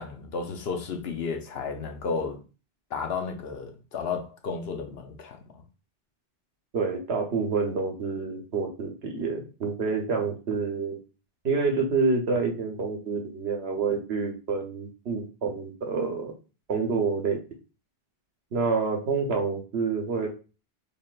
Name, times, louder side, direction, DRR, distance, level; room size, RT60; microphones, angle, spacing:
voice 1, 0.0-2.4 2.9-5.6, left 5 dB, 75° left, 1.0 m, -33 dB
voice 2, 6.7-11.0 11.4-16.3 16.7-17.4 18.5-20.3, right 4 dB, 80° right, 1.1 m, -28 dB
4.1 x 3.4 x 2.4 m
omnidirectional pair, 1.1 m